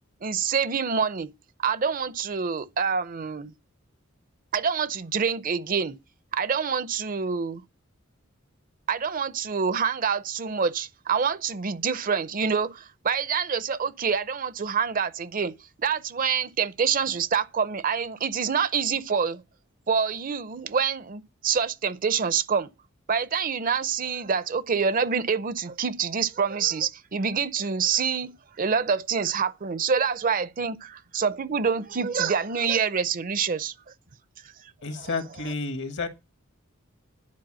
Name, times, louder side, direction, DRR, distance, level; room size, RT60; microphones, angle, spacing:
voice 1, 0.2-1.3 1.6-3.5 4.5-6.0 6.3-7.6 8.9-15.5 15.8-19.4 19.9-22.7 23.1-28.3 28.6-33.7 35.0-35.1, right 6 dB, 40° right, 0.6 m, -26 dB
voice 2, 34.8-36.1, left 3 dB, 60° left, 1.4 m, -31 dB
10.5 x 4.5 x 7.4 m
head